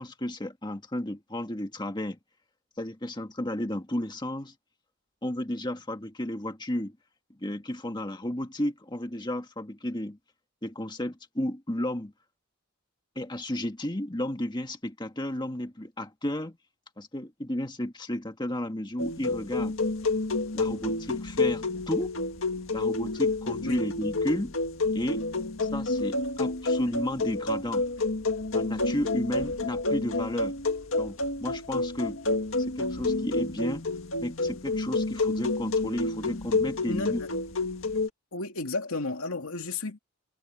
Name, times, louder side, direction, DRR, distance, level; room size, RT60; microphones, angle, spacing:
voice 1, 0.0-2.2 2.8-4.5 5.2-7.0 7.4-10.2 10.6-12.1 13.1-16.6 17.0-19.8 20.5-22.1 22.7-24.5 24.9-25.3 25.6-27.8 28.5-30.5 31.0-32.2 32.7-33.8 34.2-37.2, left 1 dB, 20° left, 1.7 m, -33 dB
sound 1, 19.0-38.1, left 2 dB, 65° left, 2.0 m, -29 dB
voice 2, 36.8-37.3 38.3-40.0, left 3 dB, 85° left, 2.4 m, -33 dB
head